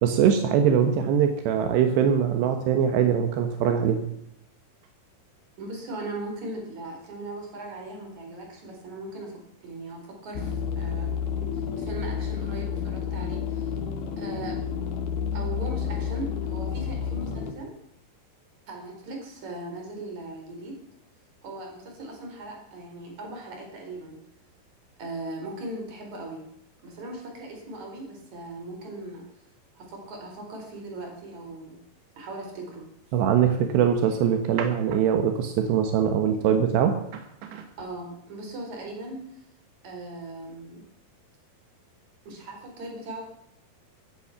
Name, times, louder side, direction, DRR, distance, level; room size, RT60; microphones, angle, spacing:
voice 1, 0.0-4.0 33.1-37.7, right 8 dB, 80° right, 6 dB, 3.5 m, -22 dB
voice 2, 5.6-11.1 11.5-13.7 14.2-14.6 15.3-17.7 18.7-20.8 21.4-24.2 25.0-26.5 26.8-29.2 29.8-31.8 32.2-32.9 37.8-39.4 39.8-40.8 42.3-43.2, right 2 dB, 45° right, 2 dB, 5.5 m, -38 dB
sound 1, 10.4-17.5, left 7 dB, 70° left, 3.4 m, -30 dB
15.5 x 14.5 x 6.0 m, 0.78 s
omnidirectional pair, 4.8 m